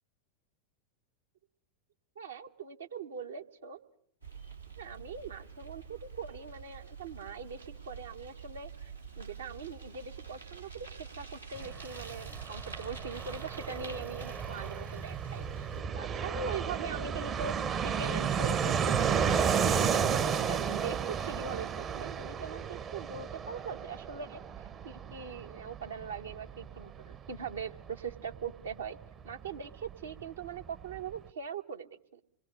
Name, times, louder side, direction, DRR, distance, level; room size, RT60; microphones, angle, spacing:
voice 1, 2.2-3.8 4.8-15.7 15.9-29.0 29.2-32.2, right 5 dB, 70° right, 5 dB, 1.5 m, -41 dB
Bicycle, 4.2-15.8, right 6 dB, 90° right, 3.3 m, -47 dB
Fixed-wing aircraft airplane, 11.5-29.9 30.2-30.3 30.5-31.2, right 7 dB, 25° right, 0.9 m, -33 dB
27.5 x 21.5 x 6.7 m, 0.65 s
figure-of-eight pair, 90°, 0 cm